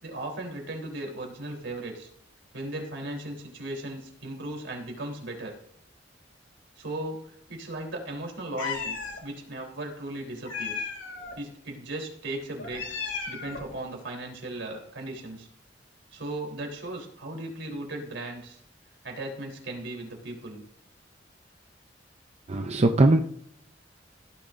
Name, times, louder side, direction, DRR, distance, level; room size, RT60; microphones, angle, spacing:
voice 1, 0.0-2.1 2.5-5.5 6.8-7.2 7.5-10.9 11.4-13.0 13.3-15.5 16.1-18.6 19.0-20.6, right 1 dB, 85° right, 1 dB, 3.6 m, -37 dB
Meow, 8.6-9.2 10.4-11.4 12.6-13.7, left 5 dB, 85° left, 2.4 m, -34 dB
voice 2, 22.5-23.2, right 2 dB, 35° right, 5 dB, 0.6 m, -20 dB
16.5 x 10.5 x 2.6 m, 0.68 s
head